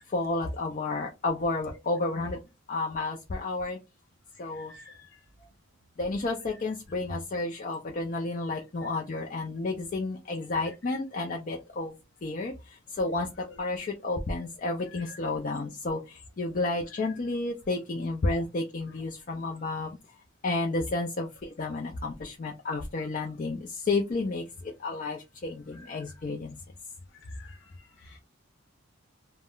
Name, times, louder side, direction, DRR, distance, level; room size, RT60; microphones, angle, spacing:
voice 1, 0.1-2.4 2.7-3.8 4.4-4.7 6.0-11.9 12.2-20.0 20.4-26.6, left 2 dB, 40° left, 0.4 m, -31 dB
voice 2, 4.3-5.2 8.5-8.6 10.7-10.8 13.5-13.6 14.9-15.2 17.0-17.2 25.7-25.9 27.1-28.2, left 2 dB, 55° left, 0.9 m, -49 dB
2.3 x 2.0 x 3.6 m
head